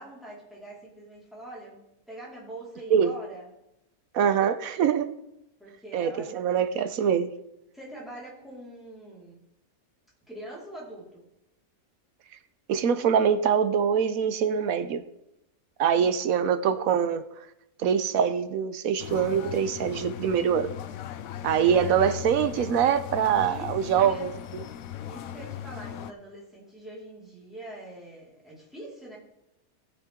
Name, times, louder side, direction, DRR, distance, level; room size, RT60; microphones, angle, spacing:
voice 1, 0.0-3.5 5.6-6.7 7.7-9.4 10.3-11.3 15.8-16.2 21.6-22.0 22.9-24.3 25.0-29.2, right 1 dB, ahead, -7 dB, 4.4 m, -43 dB
voice 2, 4.1-5.2 5.9-7.3 12.7-15.0 15.8-17.2 17.8-20.7 21.4-24.3, right 8 dB, 75° right, 12 dB, 1.1 m, -24 dB
sound 1, 19.0-26.1, left 11 dB, 75° left, 1.0 m, -38 dB
16.5 x 6.6 x 3.7 m, 0.88 s
omnidirectional pair, 1.5 m